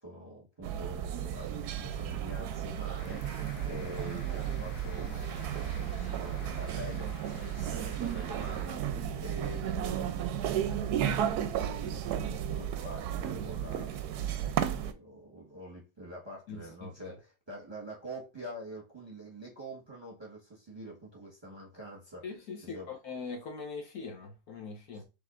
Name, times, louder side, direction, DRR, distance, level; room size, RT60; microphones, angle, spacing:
voice 1, 0.0-5.1 5.9-22.3 22.6-22.9 24.9-25.0, right 1 dB, 15° right, 1.2 m, -46 dB
sound 1, 0.6-14.9, right 10 dB, 75° right, 1.0 m, -34 dB
sound 2, 3.0-8.7, left 5 dB, 80° left, 1.5 m, -51 dB
voice 2, 16.5-17.1 22.2-25.0, left 4 dB, 65° left, 1.2 m, -42 dB
6.8 x 3.1 x 2.5 m
omnidirectional pair, 1.8 m